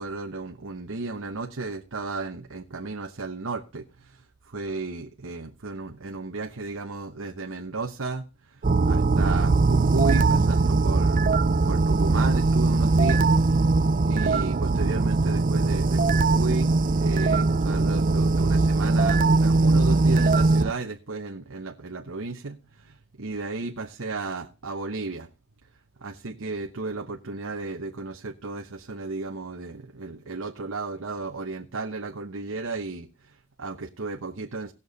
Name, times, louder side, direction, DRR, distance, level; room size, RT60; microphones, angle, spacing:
voice 1, 0.0-8.2 8.5-8.6 8.8-11.3 11.6-13.3 14.0-25.3 26.0-34.7, right 3 dB, 65° right, 1.0 m, -34 dB
sound 1, 8.6-20.7, right 3 dB, 35° right, 0.5 m, -21 dB
18.0 x 6.9 x 4.0 m
head